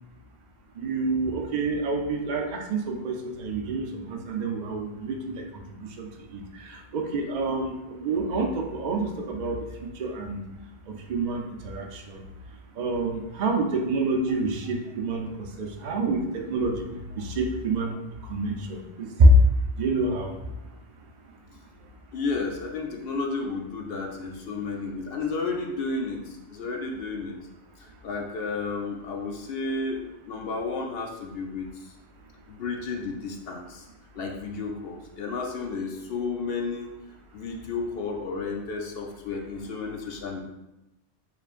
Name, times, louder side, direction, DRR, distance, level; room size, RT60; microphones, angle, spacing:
voice 1, 0.8-5.4 5.7-10.4 10.9-12.2 12.8-15.3 15.6-16.8 17.2-18.0 18.2-19.3 19.8-20.3, right 2 dB, 55° right, 2 dB, 0.5 m, -27 dB
voice 2, 22.1-26.2 26.5-27.4 28.0-31.7 32.5-33.8 34.1-36.9 37.3-40.4, left 4 dB, 65° left, 1 dB, 0.7 m, -32 dB
4.9 x 3.1 x 2.4 m, 0.96 s
omnidirectional pair, 1.2 m